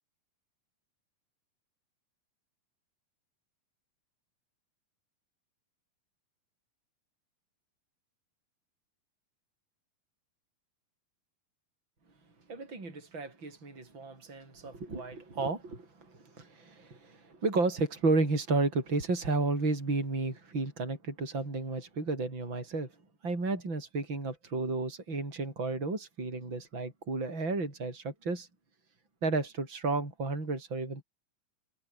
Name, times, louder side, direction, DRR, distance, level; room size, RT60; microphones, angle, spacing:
voice 1, 12.5-22.9 23.2-28.5 29.2-31.0, right 3 dB, 30° right, 7.6 m, -32 dB
open air
omnidirectional pair, 4.1 m